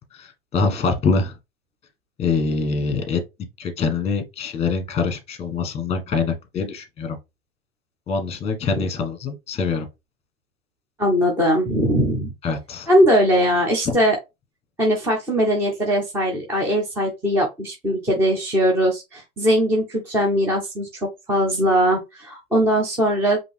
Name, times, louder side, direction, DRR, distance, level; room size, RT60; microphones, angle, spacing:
voice 1, 0.2-1.3 2.2-3.2 3.6-7.2 8.1-9.9 12.4-12.9, left 4 dB, 15° left, 1.1 m, -24 dB
voice 2, 11.0-12.3 12.9-14.2 14.8-23.4, equal, 5° right, 0.4 m, -20 dB
5.1 x 2.7 x 3.3 m
hypercardioid pair, 135°, 46 cm